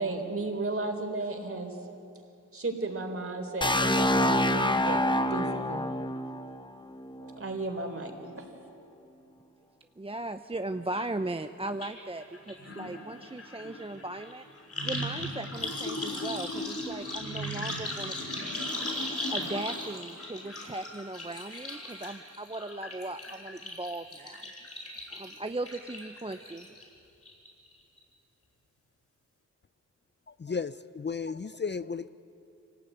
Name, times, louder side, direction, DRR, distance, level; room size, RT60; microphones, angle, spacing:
voice 1, 0.0-1.8 2.5-5.9 7.1-8.5, right 2 dB, 45° right, 3.8 m, -34 dB
sound 1, 3.6-7.4, left 1 dB, 15° left, 1.1 m, -27 dB
voice 2, 10.0-14.5 14.8-18.4 19.3-24.5 25.1-26.7, right 2 dB, 20° right, 0.7 m, -38 dB
sound 2, 11.8-11.9 12.2-26.8 27.2-27.7 28.0-28.1, left 1 dB, 50° left, 6.2 m, -37 dB
voice 3, 30.3-32.1, left 5 dB, 35° left, 0.6 m, -34 dB
25.5 x 18.0 x 9.3 m
cardioid pair, 60°, 30 cm